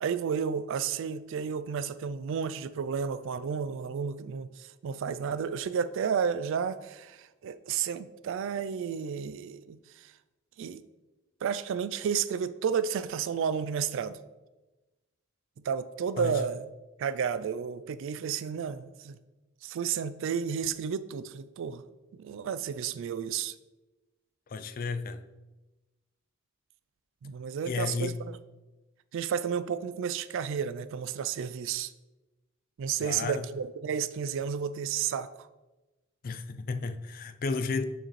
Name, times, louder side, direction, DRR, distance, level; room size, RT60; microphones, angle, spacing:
voice 1, 0.0-10.1 10.6-10.8 11.4-14.2 15.6-16.6 17.0-19.2 19.6-21.8 22.1-23.5 27.2-28.4 29.1-31.9 32.8-35.3, right 7 dB, 65° right, 0.3 m, -32 dB
voice 2, 24.5-25.2 27.6-28.2 33.0-33.5 36.2-37.8, left 4 dB, 45° left, 0.4 m, -33 dB
6.8 x 6.3 x 3.1 m
head